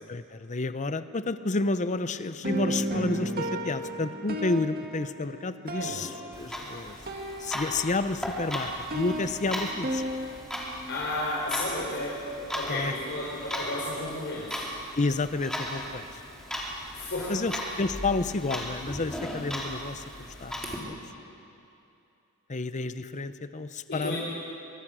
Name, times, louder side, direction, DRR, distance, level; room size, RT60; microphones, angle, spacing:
voice 1, 0.1-6.1 6.4-7.0 7.4-10.0 12.7-12.9 15.0-16.1 17.3-17.5 17.8-20.9 22.5-24.2, left 3 dB, 35° left, 12 dB, 0.7 m, -30 dB
sound 1, 2.4-8.2 8.5-10.3, right 1 dB, 45° right, 2.1 m, -34 dB
voice 2, 5.8-6.1 10.9-14.7 16.9-17.8 23.9-24.2, left 1 dB, 50° left, -5 dB, 4.0 m, -33 dB
Clock, 6.3-20.8, equal, 5° left, 3.3 m, -37 dB
23.5 x 23.5 x 6.3 m, 2.7 s
head